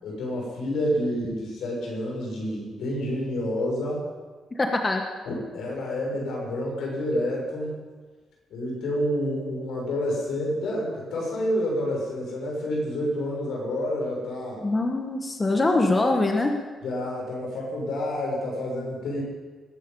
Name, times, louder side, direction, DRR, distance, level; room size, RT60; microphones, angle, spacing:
voice 1, 0.0-4.1 5.3-7.8 8.5-14.6 16.8-19.2, left 1 dB, 85° left, -2 dB, 7.0 m, -29 dB
voice 2, 4.5-5.0 14.6-16.5, left 2 dB, 25° left, 3 dB, 1.4 m, -23 dB
20.5 x 12.0 x 5.5 m, 1.4 s
cardioid pair, 115°, 0 cm